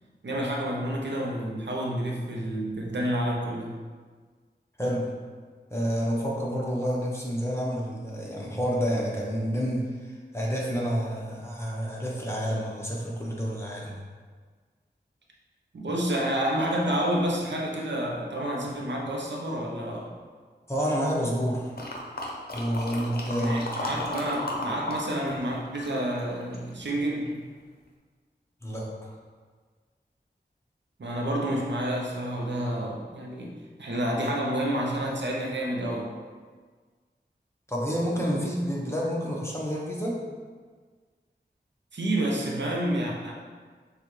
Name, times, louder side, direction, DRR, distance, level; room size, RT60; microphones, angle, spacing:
voice 1, 0.2-3.7 15.7-20.1 23.3-27.4 31.0-36.1 41.9-43.3, right 1 dB, 90° right, -2 dB, 0.7 m, -29 dB
voice 2, 4.8-5.1 5.7-13.9 20.7-21.7 22.5-23.6 28.6-29.1 37.7-40.2, equal, 15° left, -4 dB, 0.9 m, -29 dB
sound 1, 21.8-25.0 25.3-26.7 27.3-27.4, left 1 dB, 60° left, 0.7 m, -34 dB
6.5 x 2.3 x 3.2 m, 1.5 s
wide cardioid pair, 60°, 18 cm